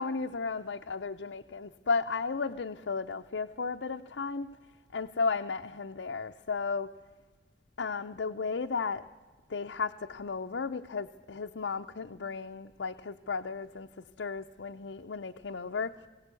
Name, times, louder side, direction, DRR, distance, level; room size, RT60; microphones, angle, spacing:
voice 1, 0.0-4.5 4.9-7.0 7.8-9.1 9.5-13.9 14.2-15.9, left 4 dB, 85° left, 4 dB, 0.6 m, -34 dB
22.5 x 17.0 x 8.3 m, 1.3 s
head